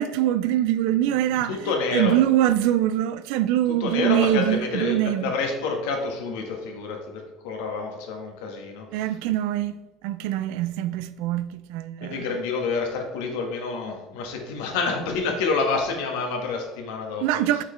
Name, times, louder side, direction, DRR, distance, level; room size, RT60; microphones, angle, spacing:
voice 1, 0.0-5.3 8.9-9.8 10.0-12.3 17.2-17.6, right 12 dB, 80° right, 0.4 m, -24 dB
voice 2, 1.5-2.2 3.8-9.0 12.0-17.2, left 4 dB, 85° left, 1.5 m, -28 dB
6.6 x 5.9 x 3.3 m
supercardioid pair, 120°, 0 cm